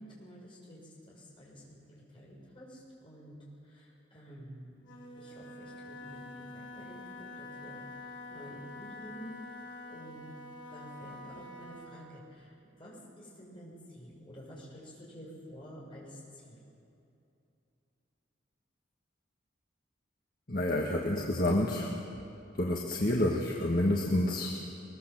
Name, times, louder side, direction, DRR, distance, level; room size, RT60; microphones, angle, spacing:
voice 1, 0.0-3.4 3.6-4.8 5.2-7.8 8.3-10.3 10.7-16.6, equal, 25° left, -4 dB, 6.7 m, -50 dB
Wind instrument woodwind instrument, 4.8-12.0, left 2 dB, 75° left, 3.5 m, -46 dB
voice 2, 20.5-22.0 22.5-24.6, left 1 dB, 50° left, -1 dB, 1.7 m, -29 dB
22.0 x 21.5 x 7.7 m, 2.7 s
head